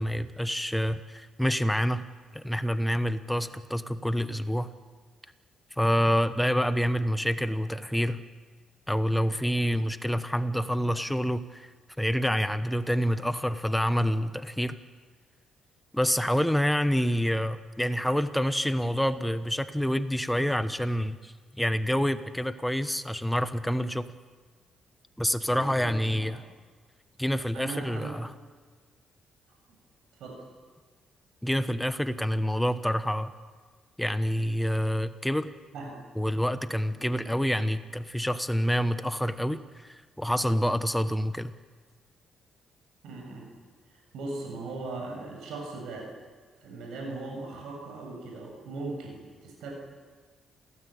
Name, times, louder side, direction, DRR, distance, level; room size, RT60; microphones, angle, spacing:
voice 1, 0.0-2.0 2.3-4.7 5.8-8.2 8.9-11.7 12.0-14.8 15.9-24.1 25.2-26.4 27.2-28.3 31.4-33.3 34.0-35.5 36.2-41.5, equal, 5° left, 11 dB, 1.2 m, -27 dB
voice 2, 25.5-26.4 27.5-28.2 29.5-29.6 30.2-30.4 35.7-36.0 37.0-37.1 43.0-43.5 43.9-46.1 46.6-49.7, right 3 dB, 80° right, 1 dB, 7.3 m, -39 dB
28.0 x 17.0 x 8.8 m, 1.5 s
cardioid pair, 90°, 0 cm